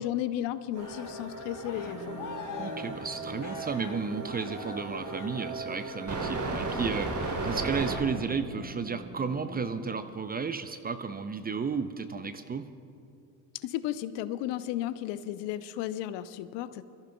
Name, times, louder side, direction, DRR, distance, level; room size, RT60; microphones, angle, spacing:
voice 1, 0.0-2.2 13.5-16.8, left 12 dB, 55° left, 14 dB, 0.7 m, -34 dB
Cheering, 0.7-6.0 6.4-6.8, left 6 dB, 40° left, 1.3 m, -45 dB
sound 1, 0.7-8.0, right 3 dB, 35° right, 3.4 m, -36 dB
sound 2, 1.7-10.0, left 2 dB, 80° left, 2.2 m, -46 dB
voice 2, 2.6-12.7, right 5 dB, 20° right, 10 dB, 0.5 m, -33 dB
25.5 x 14.0 x 2.3 m, 2.5 s
hypercardioid pair, 65°, 50 cm